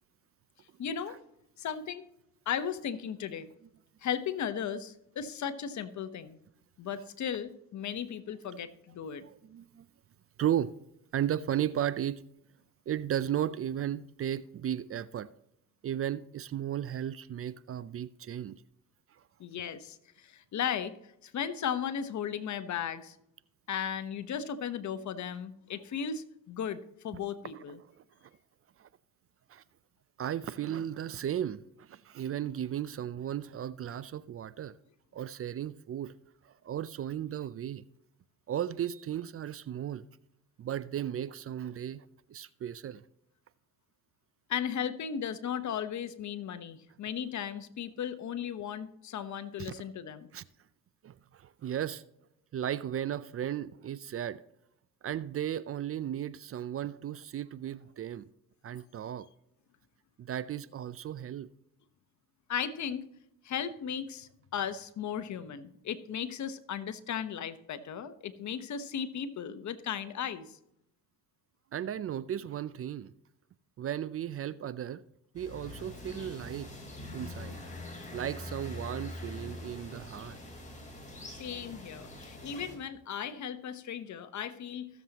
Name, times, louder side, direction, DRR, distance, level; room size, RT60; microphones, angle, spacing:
voice 1, 0.8-1.2 1.6-2.0 2.5-3.5 4.0-6.4 6.8-9.2 19.4-21.0 21.2-23.2 23.7-27.8 44.5-50.3 62.5-63.0 63.4-70.6 81.3-84.9, left 8 dB, 55° left, 1.0 m, -36 dB
voice 2, 9.2-9.9 10.4-10.7 11.1-12.2 12.9-15.3 15.8-18.6 19.1-19.2 27.5-27.6 27.9-28.0 28.8-28.9 29.5-29.6 30.2-34.7 35.1-36.1 36.4-37.8 38.5-40.1 40.6-43.0 49.6-49.8 50.3-50.4 51.0-52.0 52.5-54.4 55.0-58.3 58.6-59.3 60.2-61.5 71.7-73.1 73.8-75.0 75.3-76.7 77.1-77.6 78.1-80.4, right 10 dB, 40° right, 0.5 m, -35 dB
sound 1, 75.4-82.8, left 1 dB, 20° left, 4.0 m, -44 dB
16.0 x 7.4 x 2.9 m
supercardioid pair, 75°, 34 cm